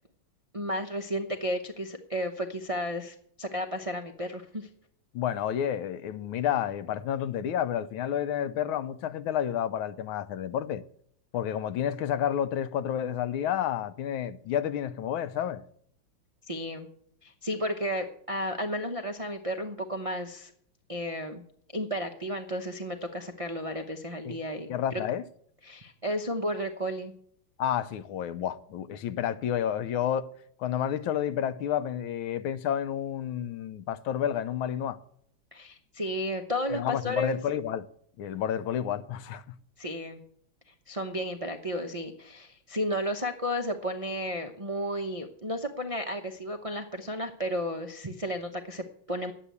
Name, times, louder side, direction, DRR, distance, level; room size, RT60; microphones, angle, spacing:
voice 1, 0.5-4.7 16.4-16.9 17.2-20.5 20.9-21.4 21.7-25.0 25.6-27.1 35.5-37.4 39.8-40.2 40.7-49.3, equal, 50° right, 0.4 m, -33 dB
voice 2, 5.1-10.8 11.3-15.6 24.2-24.4 24.7-25.2 27.6-30.3 30.6-35.0 36.7-37.9 38.2-39.4, left 10 dB, 80° left, 1.5 m, -30 dB
10.5 x 8.4 x 8.2 m
omnidirectional pair, 2.3 m